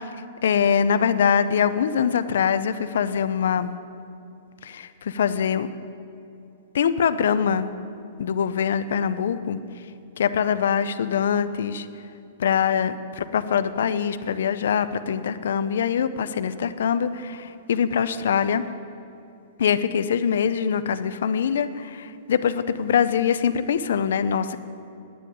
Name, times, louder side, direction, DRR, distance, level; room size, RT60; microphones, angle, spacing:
voice 1, 0.4-3.7 4.6-5.7 6.7-7.7 8.2-9.6 10.2-11.9 12.4-18.6 19.6-24.6, left 7 dB, 70° left, 12 dB, 0.6 m, -23 dB
10.0 x 7.6 x 9.2 m, 2.7 s
hypercardioid pair, 175°, 0 cm